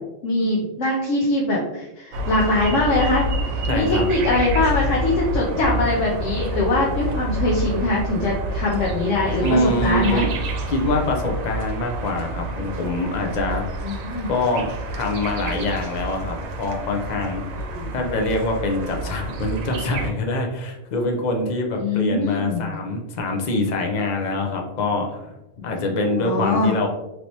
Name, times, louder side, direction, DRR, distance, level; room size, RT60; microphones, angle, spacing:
voice 1, 0.2-10.2 13.8-14.3 17.6-17.9 21.8-22.7 26.1-26.7, left 2 dB, 75° left, -4 dB, 1.0 m, -22 dB
sound 1, 2.1-20.1, right 1 dB, 90° right, 1.0 m, -28 dB
voice 2, 3.6-4.1 9.4-10.3 10.7-13.6 14.3-17.4 17.9-25.3 25.6-26.9, left 2 dB, 55° left, 2 dB, 0.5 m, -24 dB
3.1 x 2.9 x 2.6 m, 0.94 s
omnidirectional pair, 1.3 m